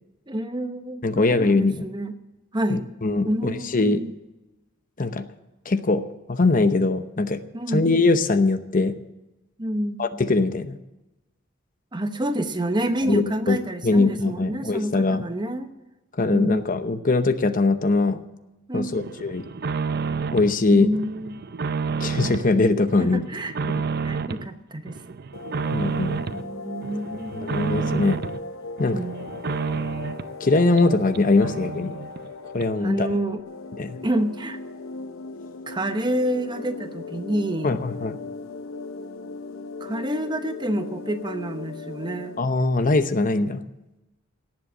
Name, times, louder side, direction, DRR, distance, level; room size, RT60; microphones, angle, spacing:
voice 1, 0.3-2.1 2.5-2.9 3.3-4.1 7.5-7.8 9.6-10.0 11.9-15.7 16.3-16.6 18.7-19.0 20.7-21.4 23.0-23.5 24.0-24.9 26.3-27.7 28.9-29.3 32.8-33.4 34.0-34.6 35.7-37.8 39.8-42.4, right 1 dB, 20° right, 8 dB, 0.9 m, -28 dB
voice 2, 1.0-1.9 2.7-4.0 5.0-5.2 5.7-6.0 6.3-7.4 7.7-8.9 10.0-10.8 13.1-15.2 16.2-18.2 18.7-19.5 20.3-20.9 22.0-23.2 23.6-23.8 25.7-26.2 27.3-28.2 28.8-29.0 30.4-31.9 32.5-33.1 33.8-34.0 37.6-38.2 42.4-43.6, left 3 dB, 40° left, 10 dB, 0.8 m, -21 dB
sound 1, 19.0-20.6 20.9-22.5 22.9-24.5 24.9-26.4 26.8-28.4 28.8-30.3 30.8-30.9 31.1-31.2 31.4-32.3 32.6-32.7, right 5 dB, 50° right, 0.6 m, -30 dB
sound 2, 25.3-42.4, left 3 dB, 80° left, 0.8 m, -38 dB
18.0 x 7.6 x 7.3 m, 1.0 s
head